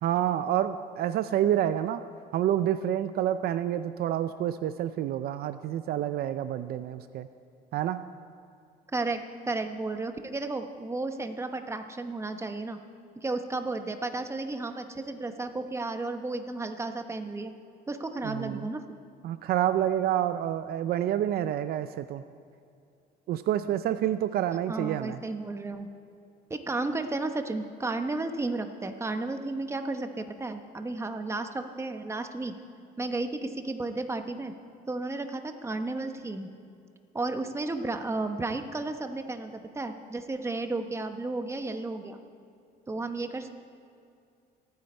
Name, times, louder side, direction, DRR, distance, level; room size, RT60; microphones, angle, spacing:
voice 1, 0.0-2.0 2.3-7.3 7.7-8.1 18.2-18.7 19.2-22.2 23.3-25.2, right 11 dB, 65° right, 12 dB, 0.5 m, -28 dB
voice 2, 8.9-12.8 13.2-17.5 17.9-18.8 24.7-25.9 26.5-32.5 33.0-34.5 34.9-36.5 37.1-42.2 42.9-43.5, right 2 dB, 15° right, 7 dB, 1.1 m, -33 dB
26.0 x 9.5 x 4.4 m, 2.5 s
cardioid pair, 110°, 17 cm